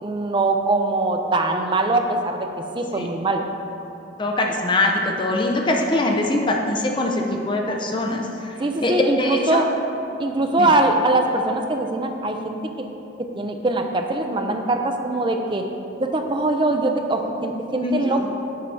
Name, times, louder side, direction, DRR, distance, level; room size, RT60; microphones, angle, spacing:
voice 1, 0.0-2.5 2.7-3.4 8.6-9.7 10.2-12.9 13.3-15.6 16.0-18.3, right 2 dB, 25° right, 4 dB, 0.5 m, -22 dB
voice 2, 4.2-8.5 8.8-9.6 10.6-10.8 17.8-18.3, left 2 dB, 25° left, 1 dB, 0.5 m, -23 dB
7.5 x 4.6 x 5.4 m, 2.8 s
head